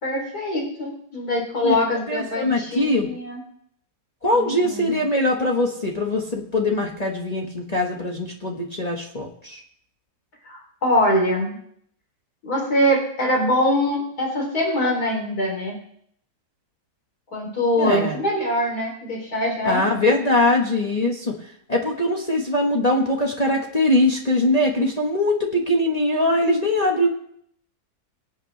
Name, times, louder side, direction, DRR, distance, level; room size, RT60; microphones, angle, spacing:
voice 1, 0.0-3.4 4.3-5.0 10.5-11.6 12.4-15.7 17.3-19.8, left 1 dB, 70° left, -1 dB, 3.8 m, -23 dB
voice 2, 2.1-3.1 4.2-9.6 17.8-18.2 19.6-21.3 21.7-27.1, left 1 dB, 25° left, -1 dB, 1.3 m, -22 dB
24.0 x 8.3 x 3.3 m, 0.67 s
omnidirectional pair, 1.7 m